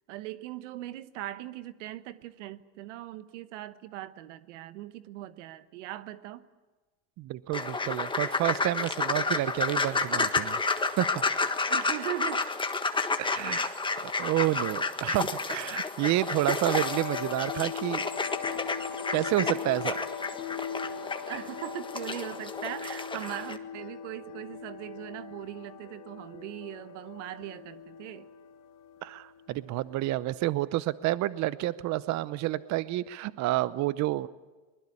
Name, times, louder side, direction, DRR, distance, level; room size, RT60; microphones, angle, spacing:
voice 1, 0.1-6.5 11.7-12.5 13.5-13.8 21.3-28.3, right 14 dB, 85° right, 13 dB, 1.2 m, -40 dB
voice 2, 7.2-10.6 11.0-11.2 13.2-13.7 14.0-18.0 19.1-20.0 29.0-34.3, right 16 dB, 50° right, 16 dB, 0.8 m, -29 dB
sound 1, 7.5-23.6, left 3 dB, 15° left, 1.5 m, -31 dB
sound 2, 16.3-30.4, left 8 dB, 65° left, 2.4 m, -40 dB
22.5 x 20.5 x 8.5 m, 1.3 s
supercardioid pair, 100°, 35 cm